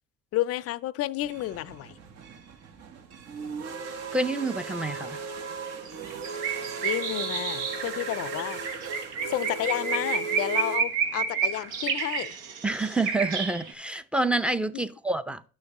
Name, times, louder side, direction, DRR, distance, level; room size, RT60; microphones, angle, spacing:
voice 1, 0.3-2.0 6.8-8.7 9.3-12.4 14.7-14.8, left 15 dB, 50° left, 0.5 m, -31 dB
sound 1, 1.2-10.8, right 5 dB, 55° right, 1.1 m, -37 dB
voice 2, 4.1-5.2 12.6-15.4, right 2 dB, 5° right, 0.6 m, -28 dB
sound 2, 5.3-5.4 5.7-13.7, right 6 dB, 75° right, 1.2 m, -31 dB
10.5 x 6.4 x 3.0 m
hypercardioid pair, 70°, 31 cm